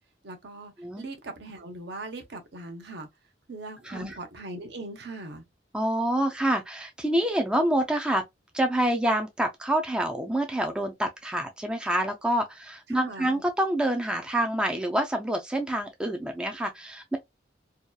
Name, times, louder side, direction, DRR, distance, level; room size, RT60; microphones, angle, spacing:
voice 1, 0.2-3.1 3.5-5.4 12.9-13.4, right 2 dB, 65° right, 0.7 m, -40 dB
voice 2, 3.8-4.2 5.7-8.2 8.5-17.2, right 1 dB, 5° right, 0.3 m, -27 dB
2.7 x 2.2 x 2.2 m
head